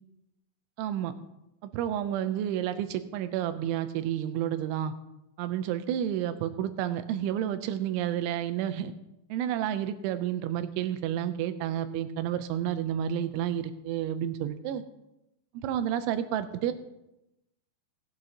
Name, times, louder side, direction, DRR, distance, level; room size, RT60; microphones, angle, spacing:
voice 1, 0.8-1.1 1.6-4.9 5.4-8.9 9.3-14.8 15.5-16.7, right 10 dB, 85° right, 10 dB, 3.1 m, -30 dB
18.5 x 8.2 x 2.8 m, 0.90 s
omnidirectional pair, 5.3 m